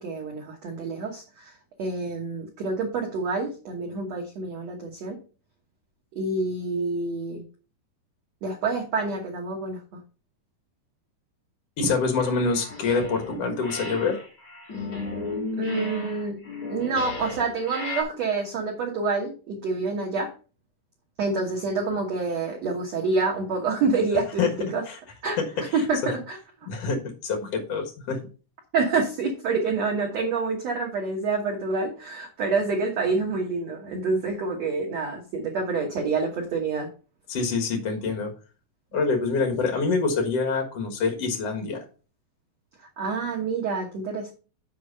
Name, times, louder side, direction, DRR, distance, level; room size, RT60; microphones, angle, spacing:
voice 1, 0.0-1.5 1.8-5.2 6.1-7.4 8.4-9.8 15.6-20.3 21.2-24.8 25.2-25.4 25.7-26.4 28.7-36.9 43.0-44.3, right 4 dB, 90° right, 0 dB, 1.4 m, -27 dB
voice 2, 11.8-14.2 24.4-25.0 25.4-26.1 26.7-28.2 37.3-38.3 38.9-41.8, left 4 dB, 85° left, 5 dB, 1.3 m, -26 dB
sound 1, 12.2-13.4 13.6-18.0, left 3 dB, 30° left, 2.3 m, -34 dB
7.7 x 5.2 x 5.4 m, 0.35 s
omnidirectional pair, 5.3 m